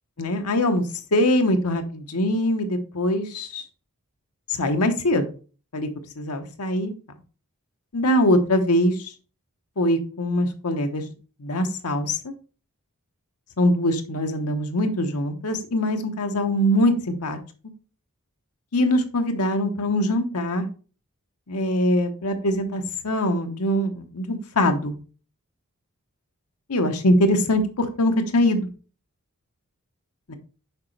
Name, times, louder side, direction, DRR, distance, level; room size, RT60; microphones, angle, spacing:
voice 1, 0.2-0.8 1.1-3.6 4.5-5.3 5.7-5.9 6.2-6.9 7.9-9.0 9.8-11.1 11.4-12.3 13.6-17.4 18.7-20.7 21.5-24.9 26.7-28.7 30.3-30.4, left 1 dB, 90° left, 6 dB, 1.0 m, -22 dB
6.5 x 4.9 x 3.3 m, 0.36 s
head